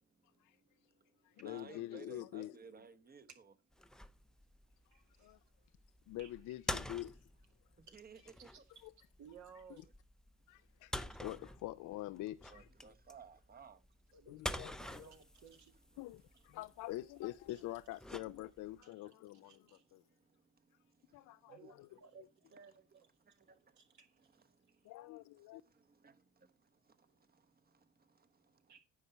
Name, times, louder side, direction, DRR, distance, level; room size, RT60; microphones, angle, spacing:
voice 1, 0.0-3.5 7.8-8.6 12.5-13.8 15.0-15.2 19.0-21.6 21.9-22.1 23.2-24.9 25.4-28.8, right 5 dB, 30° right, 1.1 m, -60 dB
voice 2, 1.2-2.6 5.2-5.4 6.1-7.2 8.8-8.9 10.5-12.9 14.3-15.1 16.0-20.0 21.1-21.9 24.8-25.6, left 16 dB, 80° left, 0.5 m, -46 dB
sound 1, 3.7-18.8, left 1 dB, ahead, 0.5 m, -48 dB
voice 3, 4.9-5.4 6.2-6.3 7.9-8.6 9.2-9.9 11.1-11.2 14.1-15.7 17.5-17.6 18.8-19.1 19.4-19.8 21.5-22.2 22.5-23.1 23.8-24.3 24.7-24.8 28.7-28.8, right 6 dB, 70° right, 2.0 m, -59 dB
9.6 x 5.5 x 5.5 m
cardioid pair, 90°, 30 cm